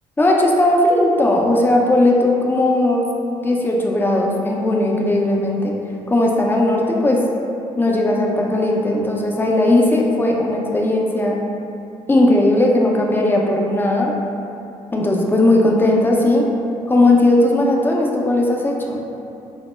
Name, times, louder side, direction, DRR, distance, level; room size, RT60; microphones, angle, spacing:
voice 1, 0.2-3.1 3.4-5.8 6.1-7.2 7.8-11.4 12.1-14.1 14.9-16.5 16.9-19.0, left 1 dB, 15° left, -1 dB, 0.4 m, -17 dB
2.0 x 2.0 x 3.1 m, 2.7 s
hypercardioid pair, 50°, 16 cm